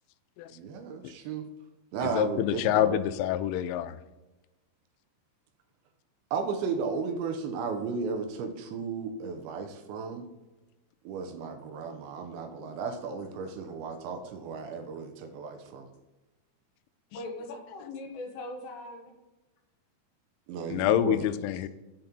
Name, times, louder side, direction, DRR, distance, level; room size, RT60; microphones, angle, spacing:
voice 1, 0.5-1.4 1.9-3.0 6.3-10.2 11.1-15.9 20.5-21.2, right 5 dB, 80° right, 5 dB, 3.0 m, -34 dB
voice 2, 2.0-4.0 12.6-12.7 20.7-21.7, left 12 dB, 90° left, 13 dB, 3.1 m, -27 dB
voice 3, 17.1-19.1, left 2 dB, 70° left, 3 dB, 2.9 m, -40 dB
9.3 x 5.3 x 4.4 m, 1.1 s
omnidirectional pair, 5.5 m